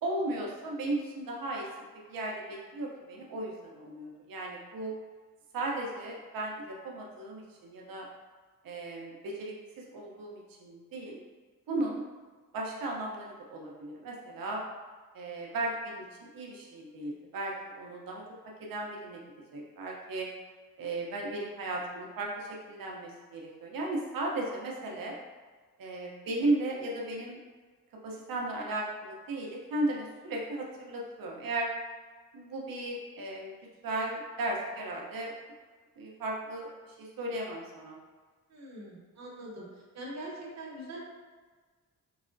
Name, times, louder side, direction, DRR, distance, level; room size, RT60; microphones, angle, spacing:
voice 1, 0.0-1.7 1.9-4.9 5.5-8.1 8.6-11.2 11.7-12.0 12.5-14.6 15.1-18.2 18.6-19.2 19.5-20.3 20.8-25.2 25.8-27.4 28.0-31.7 32.3-33.6 33.8-35.3 36.0-38.0, right 2 dB, 70° right, -2 dB, 0.8 m, -35 dB
voice 2, 38.5-39.7 39.9-41.0, right 1 dB, 50° right, -4 dB, 1.0 m, -42 dB
4.7 x 2.0 x 2.6 m, 1.4 s
supercardioid pair, 55°, 35 cm